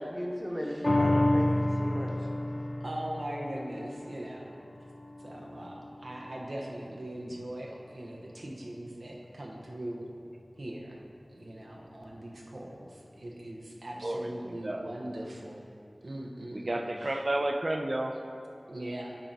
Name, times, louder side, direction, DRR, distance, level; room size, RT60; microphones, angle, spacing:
voice 1, 0.0-2.3, equal, ahead, 0 dB, 0.9 m, -37 dB
sound 1, 0.8-7.5 8.0-8.1, left 1 dB, 40° left, 0.5 m, -31 dB
voice 2, 2.8-4.5 5.2-10.1 10.6-10.9 11.3-15.7 16.0-17.2 18.7-19.2, right 1 dB, 80° right, -1 dB, 0.8 m, -40 dB
voice 3, 14.0-14.9 16.5-18.2, right 1 dB, 55° right, 5 dB, 0.4 m, -31 dB
8.1 x 3.9 x 4.6 m, 2.5 s
wide cardioid pair, 40°, 0 cm